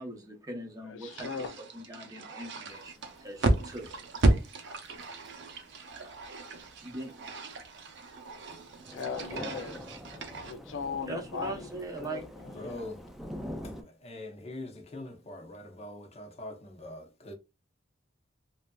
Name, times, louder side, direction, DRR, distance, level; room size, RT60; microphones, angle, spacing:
voice 1, 0.0-1.3 1.6-3.9 6.8-7.1 11.1-12.2, right 2 dB, 20° right, 0.7 m, -40 dB
voice 2, 0.8-1.6 8.9-9.8 10.1-11.7 12.0-12.9, left 5 dB, 70° left, 0.4 m, -39 dB
sound 1, 1.0-10.5, right 2 dB, 65° right, 0.6 m, -33 dB
Thunder / Rain, 2.7-13.8, equal, ahead, 0.3 m, -46 dB
voice 3, 12.5-13.0 13.6-17.3, left 1 dB, 35° left, 0.7 m, -43 dB
3.2 x 2.6 x 2.3 m
head